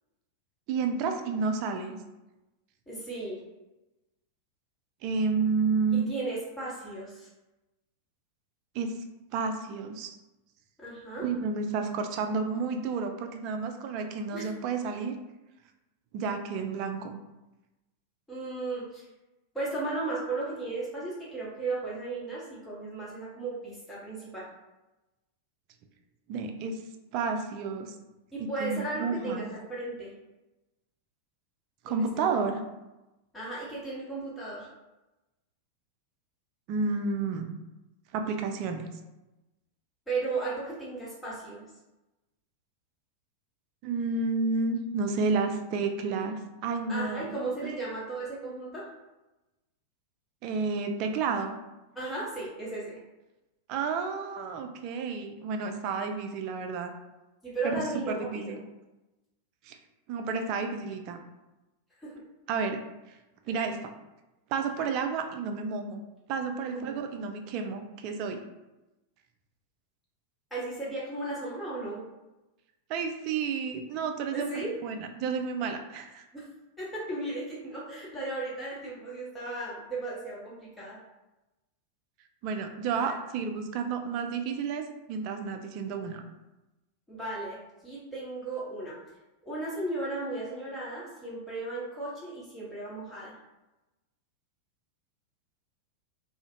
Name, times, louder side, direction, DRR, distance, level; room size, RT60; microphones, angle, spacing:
voice 1, 0.7-2.0 5.0-6.1 8.7-8.9 9.3-10.2 11.2-15.2 16.1-17.2 26.3-26.8 27.1-27.9 28.6-29.5 31.8-32.6 36.7-37.5 38.1-38.9 43.8-47.3 47.6-47.7 50.4-51.6 53.7-56.9 57.6-57.7 58.1-58.6 59.6-59.8 60.1-61.2 62.5-62.8 63.1-63.2 63.5-63.9 64.5-66.0 66.3-68.4 72.9-76.2 82.4-86.2, right 4 dB, 40° right, 5 dB, 0.3 m, -31 dB
voice 2, 2.9-3.4 5.9-7.3 10.8-11.2 14.3-14.5 18.3-19.1 19.5-24.4 28.3-30.1 31.9-32.4 33.3-34.7 40.1-41.6 46.9-48.8 51.9-53.0 57.4-58.6 62.0-62.1 66.7-67.0 70.5-72.0 74.3-74.7 76.3-76.5 76.8-81.0 83.0-83.1 87.1-87.6 87.8-88.9 89.4-93.4, right 2 dB, 10° left, -7 dB, 1.0 m, -35 dB
2.4 x 2.0 x 2.7 m, 1.0 s
figure-of-eight pair, 90°, 0 cm